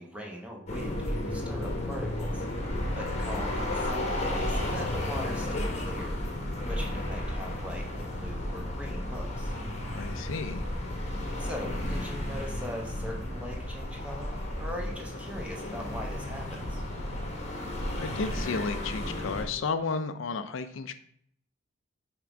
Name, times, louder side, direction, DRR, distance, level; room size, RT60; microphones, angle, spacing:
voice 1, 0.0-2.4 2.9-6.2 6.6-9.5 11.4-16.8, left 1 dB, 5° right, 0 dB, 1.0 m, -40 dB
sound 1, 0.7-19.4, left 1 dB, 35° left, 1.1 m, -33 dB
voice 2, 9.9-10.7 18.0-20.9, left 4 dB, 70° left, 10 dB, 0.5 m, -33 dB
5.8 x 3.7 x 5.0 m, 0.66 s
head